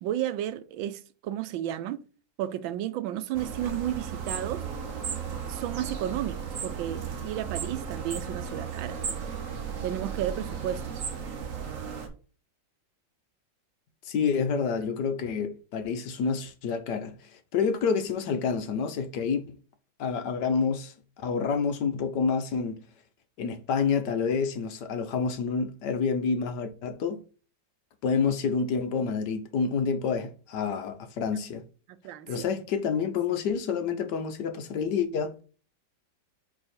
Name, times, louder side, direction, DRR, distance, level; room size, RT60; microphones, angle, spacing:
voice 1, 0.0-2.0 2.4-4.6 5.3-9.0 9.8-11.0 31.9-32.5, right 11 dB, 90° right, 1.4 m, -33 dB
sound 1, 3.3-12.1, right 7 dB, 50° right, 1.3 m, -35 dB
voice 2, 14.0-17.1 17.5-19.6 20.0-22.8 23.4-27.2 28.0-31.6 32.3-35.4, left 5 dB, 65° left, 1.4 m, -28 dB
4.8 x 4.8 x 4.3 m
omnidirectional pair, 2.1 m